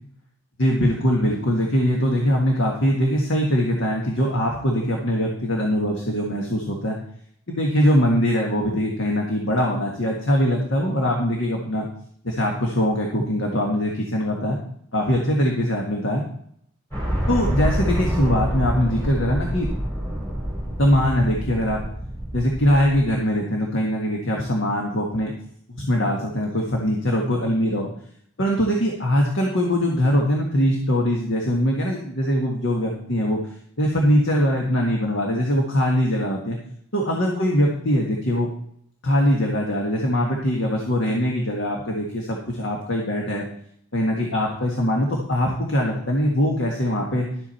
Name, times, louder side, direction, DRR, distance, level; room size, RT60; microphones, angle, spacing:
voice 1, 0.6-7.0 7.5-11.9 12.2-14.6 14.9-16.2 17.3-19.7 20.8-21.8 22.3-25.3 25.7-27.9 28.4-33.4 33.8-36.6 36.9-38.5 39.0-43.5 43.9-47.3, equal, 65° left, 0 dB, 1.8 m, -22 dB
sound 1, 16.9-23.1, equal, 10° left, 4.6 m, -27 dB
12.0 x 8.3 x 4.4 m, 0.67 s
head